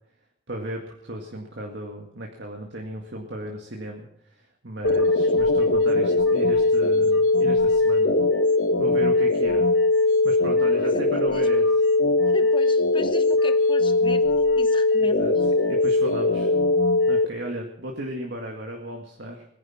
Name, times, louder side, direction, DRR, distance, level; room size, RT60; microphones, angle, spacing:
voice 1, 0.5-8.1 8.8-9.6 10.0-11.9 15.0-16.6 17.1-19.5, equal, 60° right, 1 dB, 2.0 m, -36 dB
sound 1, 4.8-17.3, left 2 dB, 60° left, 1.4 m, -20 dB
voice 2, 10.6-11.4 12.3-14.2 14.6-15.4, left 2 dB, 25° left, 8 dB, 1.3 m, -37 dB
21.0 x 11.0 x 5.9 m, 0.78 s
head